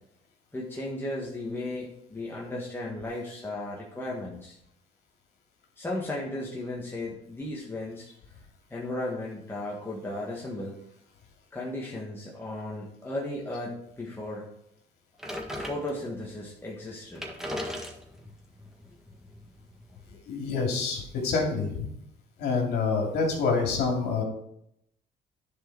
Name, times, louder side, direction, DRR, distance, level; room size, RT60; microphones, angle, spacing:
voice 1, 0.5-4.6 5.8-8.1 8.7-10.7 11.5-14.5 15.5-17.3, left 1 dB, 15° left, -4 dB, 1.7 m, -35 dB
sound 1, 15.2-16.3 16.8-16.9 17.1-20.2, left 1 dB, 5° right, 1.6 m, -38 dB
voice 2, 20.3-21.8 22.4-24.2, left 4 dB, 75° left, 1 dB, 2.6 m, -27 dB
10.0 x 4.8 x 4.7 m, 0.74 s
cardioid pair, 110°, 17 cm